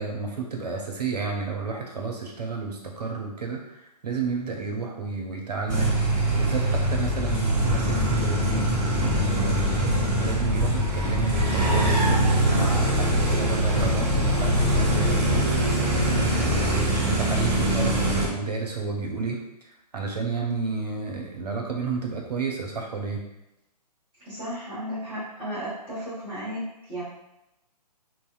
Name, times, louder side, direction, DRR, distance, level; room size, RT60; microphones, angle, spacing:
voice 1, 0.0-3.6 4.0-6.0 6.3-8.7 9.3-12.0 12.4-15.6 16.2-19.4 19.9-23.2, right 4 dB, 70° right, 1 dB, 0.7 m, -31 dB
sound 1, 5.7-18.3, right 1 dB, 20° right, 0.5 m, -23 dB
voice 2, 24.2-27.0, equal, 5° left, -15 dB, 1.3 m, -34 dB
2.6 x 2.1 x 2.3 m, 0.89 s
figure-of-eight pair, 130°, 21 cm